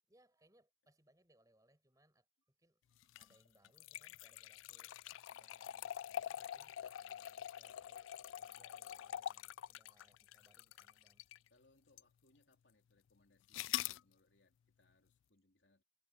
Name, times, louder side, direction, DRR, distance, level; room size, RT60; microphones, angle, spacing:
voice 1, 0.0-11.2, right 1 dB, 20° right, 6.9 m, -73 dB
sound 1, 3.0-11.5 12.0-12.1 13.5-14.0, left 11 dB, 90° left, 0.3 m, -45 dB
voice 2, 11.5-15.8, left 2 dB, 70° left, 3.2 m, -73 dB
head